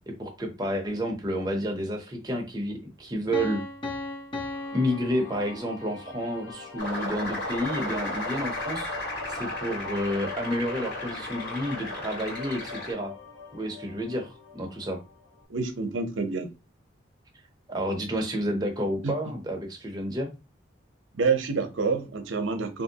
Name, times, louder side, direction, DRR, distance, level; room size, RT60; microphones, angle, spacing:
voice 1, 0.1-3.6 4.7-8.9 9.3-13.1 13.5-15.0 17.7-20.3, equal, 20° right, 0.7 m, -30 dB
Piano, 3.3-6.1, left 2 dB, 25° left, 0.5 m, -36 dB
sound 1, 4.4-15.5, left 5 dB, 80° left, 1.0 m, -43 dB
sound 2, 6.8-12.9, left 1 dB, 55° left, 1.5 m, -34 dB
voice 2, 15.5-16.5 19.0-19.1 21.1-22.8, right 4 dB, 80° right, 0.7 m, -27 dB
3.0 x 2.6 x 2.8 m
head